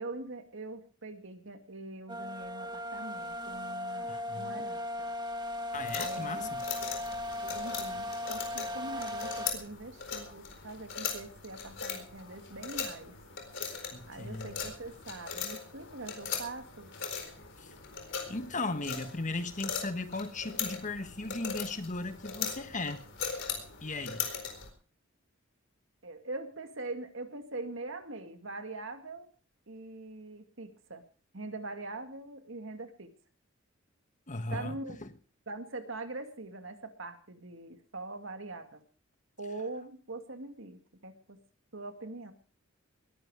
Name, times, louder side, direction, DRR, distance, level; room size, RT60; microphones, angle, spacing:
voice 1, 0.0-5.1 6.0-6.5 7.4-13.1 14.1-16.9 26.0-29.3 29.7-31.0 31.3-33.1 34.5-35.0 35.5-38.8 39.4-41.4 41.7-42.3, right 2 dB, 70° right, 7 dB, 2.2 m, -43 dB
sound 1, 2.1-9.5, left 1 dB, 20° right, 1.7 m, -37 dB
voice 2, 4.1-4.6 5.7-6.7 13.9-14.6 17.6-17.7 18.3-23.0 23.8-24.3 34.3-35.1, left 3 dB, 40° left, 9 dB, 1.4 m, -37 dB
sound 2, 5.7-24.7, left 6 dB, 65° left, 4.3 m, -40 dB
21.0 x 11.0 x 4.9 m, 0.41 s
head